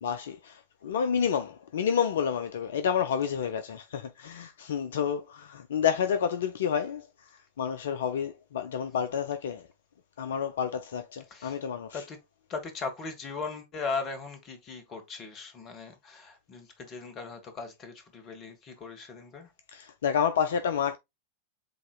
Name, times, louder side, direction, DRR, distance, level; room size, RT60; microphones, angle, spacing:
voice 1, 0.0-9.7 10.2-12.0 19.7-21.0, left 7 dB, 60° left, 0.4 m, -29 dB
voice 2, 11.3-11.6 11.9-12.2 12.5-19.5, left 4 dB, 30° left, 1.5 m, -38 dB
7.7 x 2.8 x 2.3 m
figure-of-eight pair, 90°, 0 cm